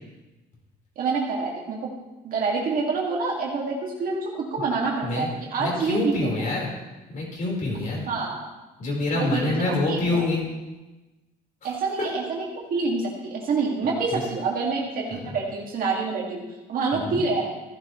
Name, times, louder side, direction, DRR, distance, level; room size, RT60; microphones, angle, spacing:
voice 1, 1.0-1.9 2.2-6.5 8.1-8.5 9.1-10.2 11.6-12.4 12.7-16.4 16.7-17.5, right 4 dB, 55° right, -2 dB, 2.3 m, -27 dB
voice 2, 5.6-6.7 7.1-8.1 8.8-10.4 11.6-11.7 14.1-14.2 15.1-15.2 16.9-17.2, left 2 dB, 50° left, -2 dB, 4.5 m, -26 dB
14.5 x 11.0 x 3.2 m, 1.1 s
cardioid pair, 110°, 17 cm